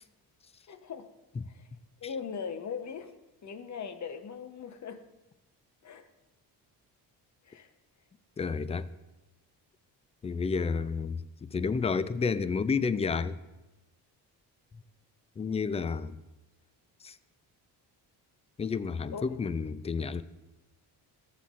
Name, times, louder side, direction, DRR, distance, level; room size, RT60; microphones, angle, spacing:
voice 1, 0.7-1.1 1.5-1.7 2.0-3.1 3.4-5.0 5.8-6.1 7.4-7.7 19.1-19.4, left 6 dB, 45° left, 0.9 m, -39 dB
voice 2, 8.4-8.9 10.2-13.4 15.4-16.2 17.0-17.1 18.6-20.2, left 5 dB, 15° left, 0.3 m, -30 dB
14.0 x 7.7 x 2.5 m
cardioid pair, 80°, 41 cm